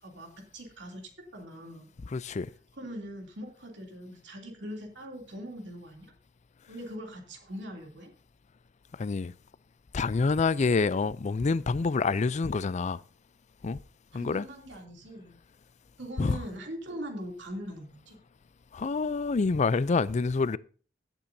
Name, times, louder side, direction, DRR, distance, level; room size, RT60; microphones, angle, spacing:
voice 1, 0.0-1.9 2.8-6.1 6.7-8.1 14.1-15.4 16.0-18.2, equal, 65° right, 2.9 m, -41 dB
voice 2, 2.1-2.5 9.0-9.3 9.9-13.0 13.6-13.8 14.1-14.5 16.2-16.4 18.7-20.6, left 4 dB, 35° left, 0.4 m, -27 dB
16.5 x 9.0 x 2.7 m
head